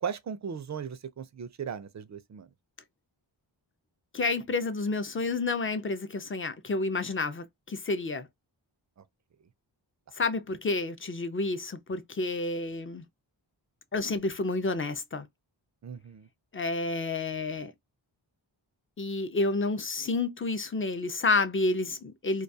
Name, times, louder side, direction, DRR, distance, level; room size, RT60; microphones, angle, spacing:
voice 1, 0.0-2.5 15.8-16.3, right 7 dB, 40° right, 0.4 m, -37 dB
voice 2, 4.1-8.3 10.2-13.0 13.9-15.3 16.5-17.7 19.0-22.4, left 3 dB, 30° left, 0.4 m, -30 dB
2.3 x 2.3 x 2.6 m
wide cardioid pair, 80°, 47 cm